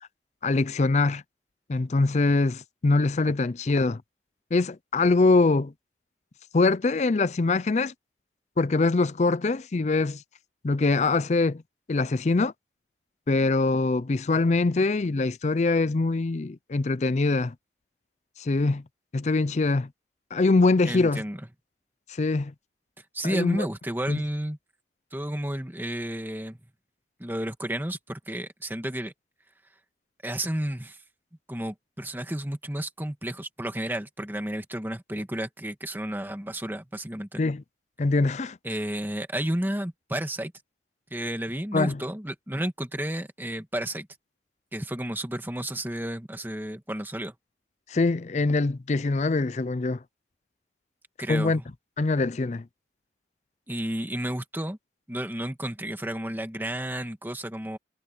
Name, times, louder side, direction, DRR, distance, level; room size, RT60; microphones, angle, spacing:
voice 1, 0.4-1.2 1.7-4.0 4.5-5.7 6.5-7.9 8.6-10.2 10.6-11.6 11.9-12.5 13.3-17.5 18.4-18.8 19.1-19.9 20.3-21.2 22.1-22.5 23.2-23.7 24.1-24.2 37.4-37.6 38.0-38.6 41.7-42.0 47.9-50.0 51.3-51.6 52.0-52.6, left 3 dB, 40° left, 0.4 m, -23 dB
voice 2, 20.9-21.4 23.1-24.6 25.1-26.6 27.2-29.1 30.2-31.0 31.5-37.4 38.6-40.5 41.1-44.1 44.7-47.3 51.2-51.6 53.7-54.8 55.1-57.8, right 1 dB, 10° right, 1.6 m, -32 dB
head